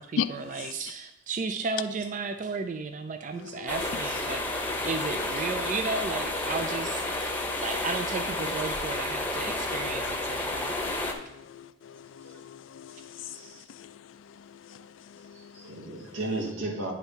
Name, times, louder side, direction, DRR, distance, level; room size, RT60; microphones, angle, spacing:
voice 1, 0.0-4.4 4.8-10.7, right 4 dB, 40° right, 0.4 m, -34 dB
sound 1, 3.7-11.1, left 2 dB, 10° left, 0.8 m, -31 dB
voice 2, 10.8-11.2 11.5-13.2 13.8-13.9 14.7-14.8 15.2-15.4, left 7 dB, 70° left, 0.3 m, -36 dB
voice 3, 13.2-13.6 15.5-16.9, right 2 dB, 80° right, 1.8 m, -35 dB
9.7 x 3.5 x 5.5 m
head